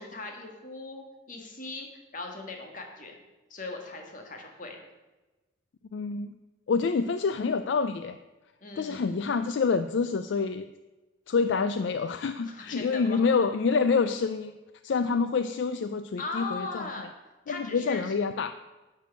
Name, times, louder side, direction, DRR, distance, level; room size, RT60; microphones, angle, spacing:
voice 1, 0.0-3.2 3.5-4.8 8.6-9.3 12.4-13.2 16.2-17.0 17.5-18.1, left 3 dB, 40° left, 3 dB, 1.6 m, -39 dB
voice 2, 5.9-6.3 6.7-8.2 8.8-10.7 11.3-14.5 14.8-16.8 17.5-18.5, left 5 dB, 65° left, 10 dB, 0.4 m, -27 dB
10.5 x 4.7 x 7.7 m, 1.1 s
head